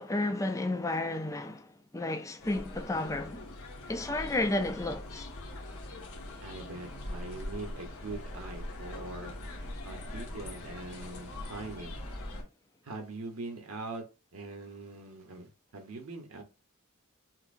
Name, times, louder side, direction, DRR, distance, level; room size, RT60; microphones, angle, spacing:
voice 1, 0.0-1.7 1.9-3.4 3.9-5.3, left 2 dB, 15° left, 0.4 m, -32 dB
sound 1, 2.4-12.4, left 1 dB, 85° left, 1.0 m, -42 dB
voice 2, 6.4-9.4 9.8-12.0 12.8-14.0 14.3-16.4, right 2 dB, 85° right, 1.0 m, -42 dB
5.7 x 2.0 x 2.5 m
head